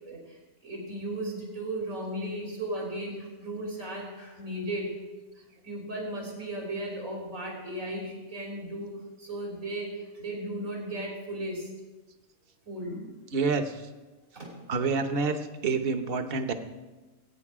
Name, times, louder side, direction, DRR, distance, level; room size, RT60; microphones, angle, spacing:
voice 1, 0.0-4.9 5.4-11.7 12.7-13.2 14.4-14.6, right 1 dB, 85° right, -2 dB, 3.8 m, -36 dB
voice 2, 13.3-13.7 14.7-15.4 15.6-16.5, right 4 dB, 50° right, 8 dB, 1.1 m, -27 dB
19.5 x 9.0 x 4.9 m, 1.2 s
omnidirectional pair, 1.4 m